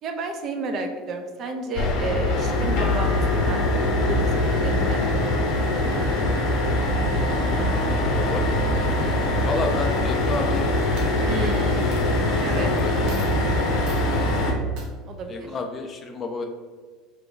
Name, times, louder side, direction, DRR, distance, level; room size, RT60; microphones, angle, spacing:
voice 1, 0.0-3.6 3.9-5.5 11.3-12.1 12.4-12.7 15.1-15.5, right 3 dB, 45° right, 5 dB, 0.5 m, -32 dB
sound 1, 1.7-14.5, left 1 dB, 55° left, 0.8 m, -22 dB
voice 2, 7.9-9.1 9.4-10.7 11.4-11.7 12.3-12.9 15.3-16.4, left 3 dB, 25° left, 3 dB, 0.4 m, -31 dB
Coin (dropping), 10.5-10.6 11.0-11.6 11.9-12.0 12.8-12.9 13.1-13.4 13.8-14.1 14.7-14.9, right 3 dB, 65° right, 1.0 m, -43 dB
3.3 x 2.9 x 3.8 m, 1.5 s
supercardioid pair, 125°, 0 cm